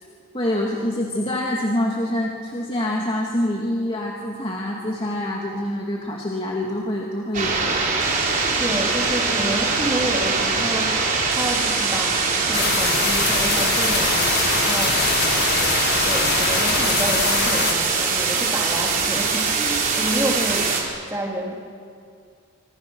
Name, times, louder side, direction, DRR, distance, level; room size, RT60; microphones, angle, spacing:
voice 1, 0.3-7.6, left 1 dB, 25° left, -2 dB, 2.4 m, -25 dB
sound 1, 7.3-20.8, right 4 dB, 40° right, 3.9 m, -22 dB
voice 2, 8.6-15.0 16.0-20.7 21.1-21.5, right 1 dB, 15° right, 0 dB, 3.2 m, -29 dB
sound 2, 12.5-17.7, left 7 dB, 50° left, 1.5 m, -24 dB
26.0 x 25.5 x 6.4 m, 2.3 s
head